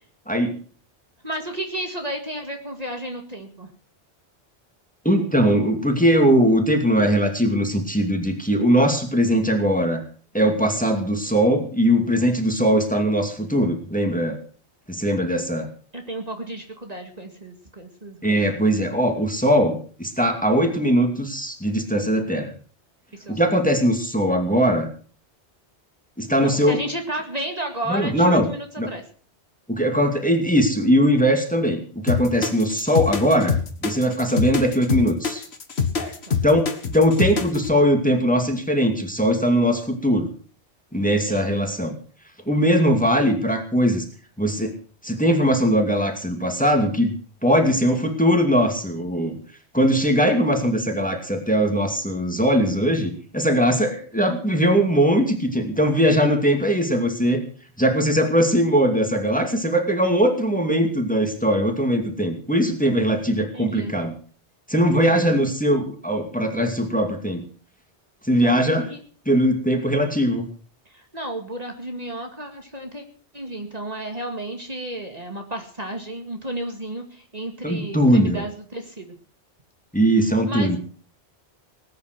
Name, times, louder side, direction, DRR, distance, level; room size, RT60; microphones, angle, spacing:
voice 1, 1.2-3.7 15.9-18.7 23.1-23.4 26.4-29.0 36.0-36.4 41.3-41.5 63.5-63.9 65.1-65.4 68.4-68.6 68.9-69.0 70.9-73.0 73.3-79.2 80.5-80.8, right 1 dB, 35° right, 3 dB, 2.3 m, -33 dB
voice 2, 5.0-10.0 10.3-14.4 14.9-15.7 18.2-22.5 23.3-24.9 26.2-26.8 27.9-28.5 28.8-28.9 29.7-33.5 33.8-35.4 36.4-40.3 40.9-41.9 42.5-44.0 44.4-44.7 45.0-47.1 47.4-49.4 49.7-57.4 57.8-64.1 64.7-67.4 68.2-68.9 69.3-70.5 77.6-78.4 79.9-80.8, equal, 5° left, 4 dB, 2.5 m, -20 dB
sound 1, 32.1-37.7, left 6 dB, 70° left, 1.8 m, -24 dB
19.5 x 9.5 x 6.1 m, 0.42 s
omnidirectional pair, 1.1 m